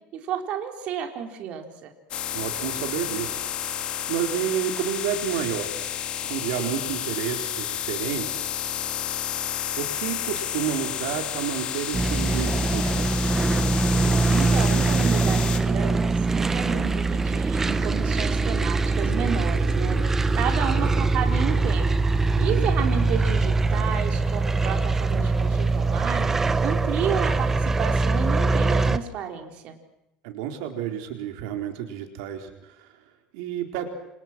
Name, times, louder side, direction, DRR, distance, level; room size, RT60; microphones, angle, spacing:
voice 1, 0.1-1.9 14.3-21.9 22.4-26.3 26.6-29.7, right 8 dB, 45° right, 4 dB, 4.3 m, -31 dB
sound 1, 2.1-15.6, left 10 dB, 40° left, 2.9 m, -31 dB
voice 2, 2.3-3.4 3.7-6.0 6.2-8.5 9.8-13.2 22.4-22.9 30.2-32.9 33.3-33.9, right 10 dB, 85° right, 5 dB, 4.1 m, -30 dB
sound 2, 11.9-29.0, right 3 dB, 15° right, 1.2 m, -23 dB
29.0 x 28.0 x 6.1 m, 0.87 s
cardioid pair, 160°, 3 cm